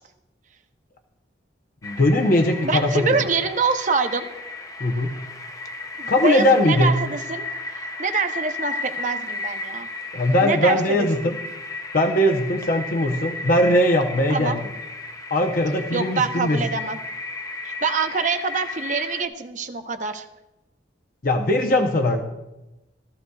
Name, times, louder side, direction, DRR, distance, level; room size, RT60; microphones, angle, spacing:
voice 1, 1.8-3.2 4.8-5.1 6.1-7.0 10.1-11.4 11.9-14.6 15.3-16.7 21.2-22.2, left 1 dB, 50° left, 3 dB, 0.8 m, -20 dB
sound 1, 1.8-19.2, left 2 dB, 20° left, 0.5 m, -34 dB
voice 2, 2.6-4.3 6.0-7.5 8.0-9.9 10.4-11.1 14.3-14.6 15.9-17.0 17.6-20.2, right 4 dB, 40° right, 7 dB, 0.7 m, -25 dB
16.0 x 13.5 x 2.3 m, 0.99 s
head